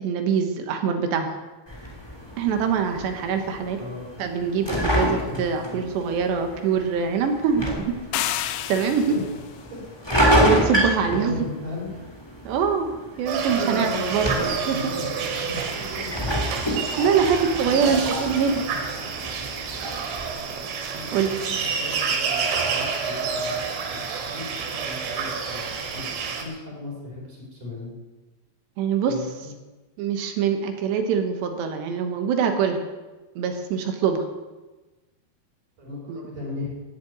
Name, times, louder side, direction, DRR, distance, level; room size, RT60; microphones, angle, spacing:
voice 1, 0.0-1.3 2.4-3.8 4.2-7.7 8.1-8.3 8.7-9.1 10.1-11.5 12.4-14.3 14.7-14.8 15.9-16.1 17.0-18.6 19.6-19.8 21.1-21.3 28.8-29.2 30.0-32.8 33.4-34.3 36.1-36.2, right 6 dB, 70° right, 5 dB, 3.2 m, -24 dB
sound 1, 1.7-20.3, equal, 10° left, 1.4 m, -29 dB
voice 2, 3.7-4.1 5.3-5.8 9.1-9.2 9.7-9.8 11.1-12.1 13.1-13.2 13.6-16.5 17.2-17.3 17.7-18.4 20.9-26.1 26.4-27.9 29.1-29.5 35.8-36.8, left 2 dB, 45° right, -5 dB, 5.5 m, -36 dB
sound 2, 8.1-9.4, left 13 dB, 80° left, 3.1 m, -29 dB
sound 3, 13.3-26.5, right 5 dB, 90° right, 4.5 m, -28 dB
14.5 x 7.9 x 9.2 m, 1.2 s
omnidirectional pair, 5.6 m